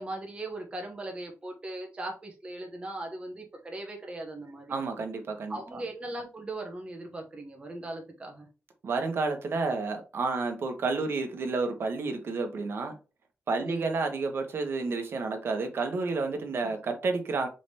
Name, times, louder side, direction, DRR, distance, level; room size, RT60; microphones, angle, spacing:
voice 1, 0.0-4.8 5.5-8.5 13.6-13.9 16.6-16.7, right 2 dB, 25° right, 0.8 m, -39 dB
voice 2, 4.7-5.8 8.8-13.0 13.5-17.5, right 3 dB, 55° right, 1.0 m, -30 dB
5.0 x 3.2 x 2.7 m
wide cardioid pair, 135°, 5 cm